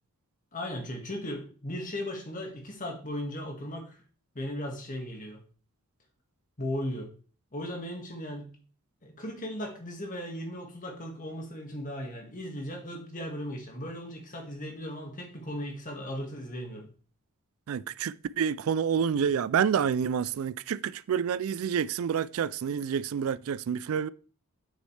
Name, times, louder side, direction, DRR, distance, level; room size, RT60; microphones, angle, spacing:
voice 1, 0.5-4.0 4.4-5.4 6.6-7.1 7.5-8.5 9.0-16.9, equal, 35° left, 1.8 m, -37 dB
voice 2, 17.7-24.1, right 7 dB, 70° right, 0.3 m, -28 dB
8.0 x 6.4 x 3.3 m
head